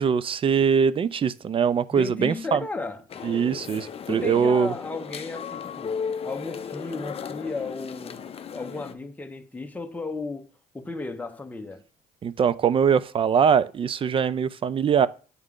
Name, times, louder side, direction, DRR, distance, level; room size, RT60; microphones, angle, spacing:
voice 1, 0.0-2.6 3.2-4.7 12.2-15.1, right 7 dB, 30° right, 0.4 m, -22 dB
voice 2, 1.9-3.0 4.1-8.2 8.5-10.5 10.7-11.8, left 3 dB, 10° left, 0.8 m, -34 dB
sound 1, 3.1-8.9, left 6 dB, 35° left, 0.6 m, -36 dB
9.4 x 3.2 x 3.7 m
cardioid pair, 110°, 17 cm